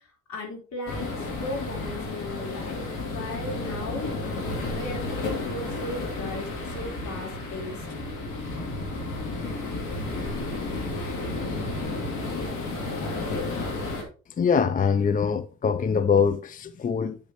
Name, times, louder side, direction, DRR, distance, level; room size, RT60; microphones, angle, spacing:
voice 1, 0.3-1.1 1.4-4.1 4.7-6.5 6.7-7.9, left 2 dB, 65° left, 4.0 m, -36 dB
sound 1, 0.9-14.0, left 2 dB, 85° left, 2.7 m, -32 dB
voice 2, 14.4-17.2, left 6 dB, 30° left, 0.4 m, -23 dB
8.8 x 6.9 x 3.0 m
cardioid pair, 90°, 30 cm